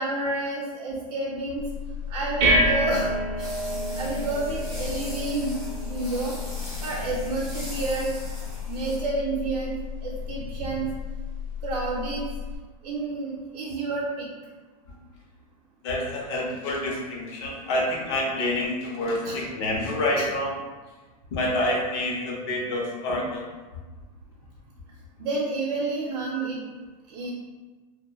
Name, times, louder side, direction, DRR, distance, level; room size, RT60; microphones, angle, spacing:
voice 1, 0.0-1.7 2.1-3.1 3.4-3.5 4.0-6.3 6.8-8.1 8.7-9.7 10.0-10.9 11.6-12.3 12.8-14.2 19.2-19.4 20.1-20.3 25.2-26.6 27.1-27.3, right 2 dB, 80° right, -5 dB, 0.5 m, -29 dB
sound 1, 1.6-12.6, left 1 dB, 30° right, 0.7 m, -30 dB
sound 2, 3.4-9.0, equal, ahead, 0.7 m, -40 dB
voice 2, 15.8-20.5 21.3-23.5, left 1 dB, 45° left, -2 dB, 0.7 m, -27 dB
2.8 x 2.2 x 2.2 m, 1.3 s
supercardioid pair, 160°, 20 cm